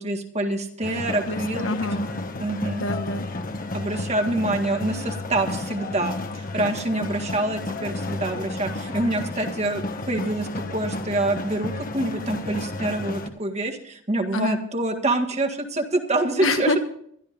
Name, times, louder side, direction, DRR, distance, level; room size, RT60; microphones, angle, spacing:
voice 1, 0.0-1.8 2.4-2.9 3.7-16.7, right 2 dB, 35° right, 5 dB, 1.8 m, -26 dB
sound 1, 0.8-13.3, left 2 dB, 45° left, 1.2 m, -32 dB
voice 2, 1.2-2.1 2.8-3.3 14.3-14.6 16.4-16.8, left 2 dB, 70° left, 7 dB, 1.5 m, -26 dB
23.5 x 12.0 x 2.6 m, 0.65 s
head